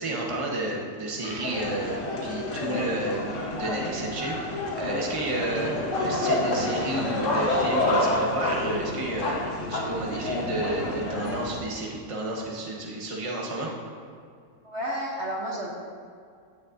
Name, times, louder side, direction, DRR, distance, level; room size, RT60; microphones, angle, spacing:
voice 1, 0.0-9.4 9.7-13.7, right 1 dB, 20° right, -2 dB, 1.2 m, -31 dB
sound 1, 1.2-11.6, left 2 dB, 50° left, 1.5 m, -28 dB
voice 2, 14.6-15.7, equal, 45° right, -3 dB, 1.2 m, -32 dB
16.0 x 7.2 x 2.7 m, 2.2 s
omnidirectional pair, 1.8 m